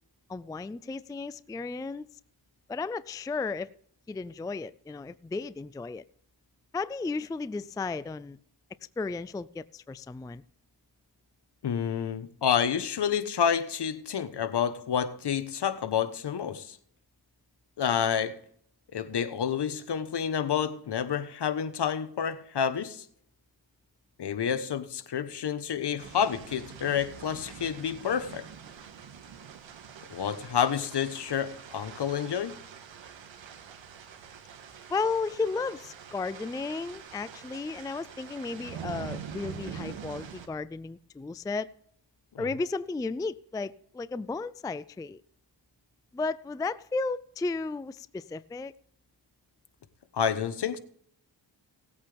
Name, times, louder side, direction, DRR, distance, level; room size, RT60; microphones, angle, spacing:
voice 1, 0.3-2.1 2.7-3.7 4.1-6.0 6.7-8.4 9.0-10.4 34.9-41.7 42.4-45.2 46.1-48.7, left 4 dB, 10° left, 0.3 m, -34 dB
voice 2, 11.6-16.8 17.8-18.4 18.9-23.0 24.2-28.5 30.1-32.6 42.3-42.5 50.1-50.8, left 8 dB, 60° left, 1.2 m, -29 dB
sound 1, 26.0-40.5, right 7 dB, 85° right, 1.5 m, -45 dB
18.0 x 8.5 x 3.5 m
cardioid pair, 70°, 45 cm